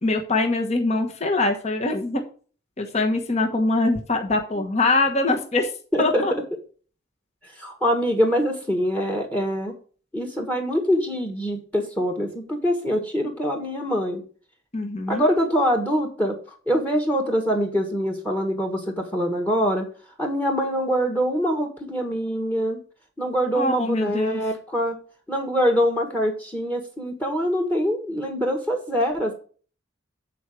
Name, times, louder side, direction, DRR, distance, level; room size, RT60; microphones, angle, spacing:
voice 1, 0.0-2.2 2.8-5.7 6.0-6.3 14.7-15.3 23.5-24.4, left 2 dB, 30° left, 3 dB, 1.2 m, -23 dB
voice 2, 5.9-6.2 7.6-9.7 10.1-14.2 15.1-16.4 16.7-19.9 20.2-22.8 23.2-25.0 25.3-29.3, equal, 10° left, 5 dB, 1.4 m, -24 dB
8.4 x 4.7 x 6.3 m, 0.40 s
head